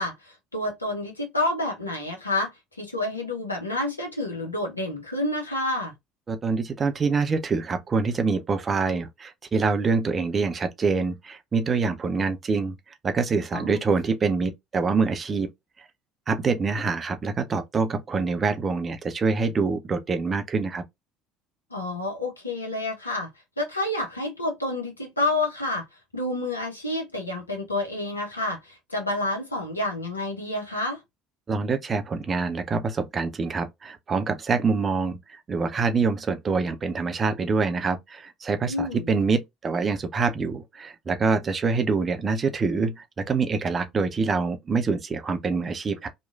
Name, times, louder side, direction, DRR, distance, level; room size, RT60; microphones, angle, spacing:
voice 1, 0.0-5.9 13.5-13.8 21.7-23.3 23.6-25.8 26.1-31.0 38.6-39.1, left 2 dB, 85° left, 0.7 m, -29 dB
voice 2, 6.3-12.7 13.0-15.5 16.3-20.8 31.5-46.1, right 4 dB, 30° right, 0.5 m, -25 dB
3.0 x 2.2 x 2.3 m
figure-of-eight pair, 60°, 0 cm